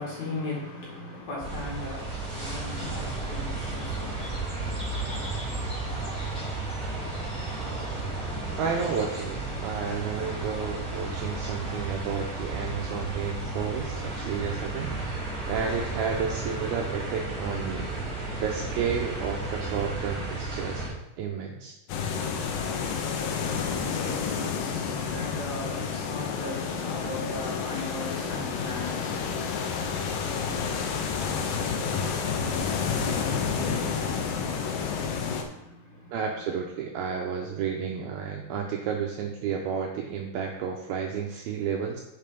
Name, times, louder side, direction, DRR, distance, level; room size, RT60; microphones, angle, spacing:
voice 1, 0.0-4.7 22.9-36.2, left 2 dB, 55° left, 2.4 m, -39 dB
sound 1, 1.4-20.9, right 2 dB, ahead, 2.3 m, -33 dB
voice 2, 8.6-14.9 15.5-17.9 18.4-20.8 21.2-21.8 36.1-42.0, right 6 dB, 80° right, 2.2 m, -31 dB
sound 2, 21.9-35.4, left 6 dB, 85° left, 1.9 m, -30 dB
7.6 x 5.7 x 5.2 m
omnidirectional pair, 5.0 m